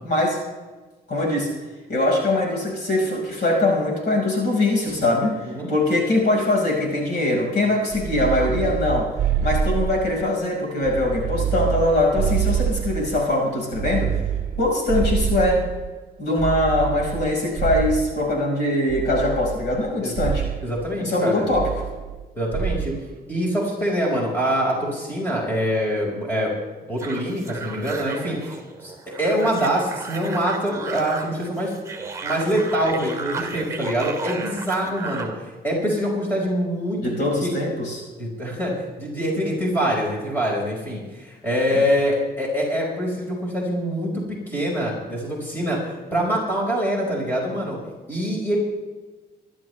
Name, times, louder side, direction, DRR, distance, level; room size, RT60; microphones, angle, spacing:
voice 1, 0.0-0.4 1.1-1.5 1.9-5.4 5.7-9.1 9.4-14.2 14.6-15.6 16.2-20.4 21.0-21.8 37.0-38.0 41.7-41.8, left 2 dB, 75° left, -2 dB, 5.2 m, -22 dB
sound 1, 7.9-10.3 10.8-13.3 13.7-15.9 16.4-18.3 18.9-19.9 20.1-20.6 21.5-22.2 22.5-23.0, right 8 dB, 50° right, 0.9 m, -26 dB
voice 2, 20.6-21.5 22.4-23.0 23.3-26.5 26.9-31.7 32.2-37.1 37.4-37.5 38.2-38.7 39.0-47.8 48.1-48.6, equal, 10° left, -3 dB, 5.4 m, -24 dB
sound 2, 27.0-35.4, right 4 dB, 15° right, 2.3 m, -34 dB
24.5 x 12.0 x 3.4 m, 1.3 s
wide cardioid pair, 165°, 17 cm